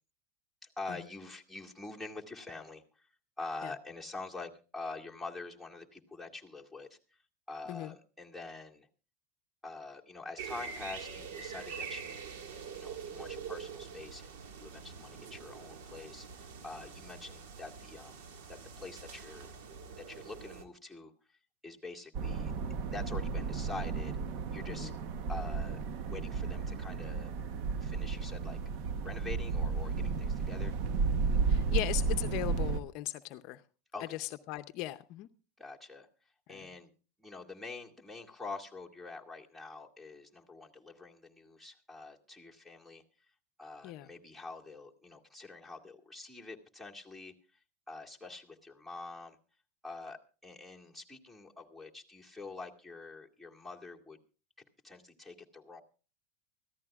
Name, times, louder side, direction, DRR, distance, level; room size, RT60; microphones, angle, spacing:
voice 1, 0.6-3.1 3.4-7.0 7.5-8.9 9.6-19.5 20.0-21.1 21.6-22.5 22.9-24.1 24.5-24.9 25.3-25.8 26.1-27.3 27.8-28.6 29.0-30.8 33.9-34.2 35.6-36.1 36.5-36.9 37.2-43.0 43.6-47.3 47.9-49.4 49.8-54.2 54.6-55.8, left 3 dB, 5° right, 2.1 m, -46 dB
sound 1, 10.4-20.6, right 6 dB, 70° right, 1.8 m, -45 dB
sound 2, 22.1-32.8, right 4 dB, 55° right, 0.9 m, -33 dB
voice 2, 31.5-33.6 34.1-35.3 36.5-36.7 43.8-44.1, left 16 dB, 55° left, 0.6 m, -38 dB
24.5 x 14.5 x 2.4 m
supercardioid pair, 130°, 0 cm